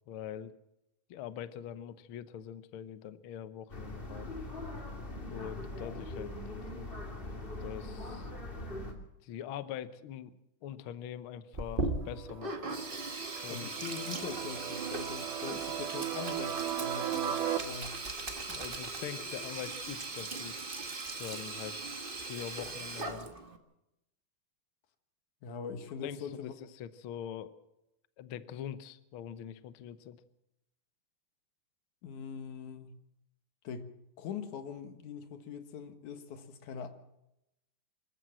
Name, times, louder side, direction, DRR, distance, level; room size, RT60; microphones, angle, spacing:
voice 1, 0.1-0.6 1.1-4.4 5.3-6.3 6.7-6.9 7.6-8.3 9.2-12.8 13.4-13.7 18.5-20.6 21.2-23.3 26.0-27.6 28.2-30.2, left 9 dB, 85° left, 13 dB, 1.1 m, -43 dB
sound 1, 3.7-8.9, left 2 dB, 20° left, 2.1 m, -41 dB
Sink (filling or washing), 11.5-23.6, right 3 dB, 35° right, 0.8 m, -39 dB
sound 2, 12.0-17.6, right 11 dB, 80° right, 2.6 m, -37 dB
voice 2, 13.5-18.0 25.4-26.5 32.0-33.0 33.6-33.9 34.2-36.9, left 6 dB, 70° left, 8 dB, 2.9 m, -42 dB
25.5 x 14.0 x 7.6 m, 0.88 s
omnidirectional pair, 3.7 m